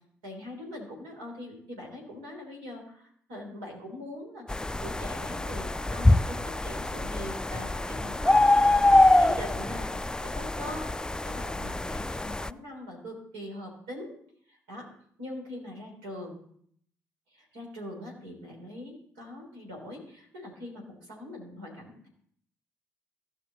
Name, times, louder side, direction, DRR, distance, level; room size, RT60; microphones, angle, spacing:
voice 1, 0.2-14.1 14.5-14.9 15.2-16.4 17.3-22.1, left 1 dB, 75° right, 0 dB, 3.3 m, -42 dB
sound 1, 4.5-12.5, left 2 dB, 10° left, 0.3 m, -25 dB
16.5 x 5.8 x 4.1 m, 0.65 s
figure-of-eight pair, 40°, 8 cm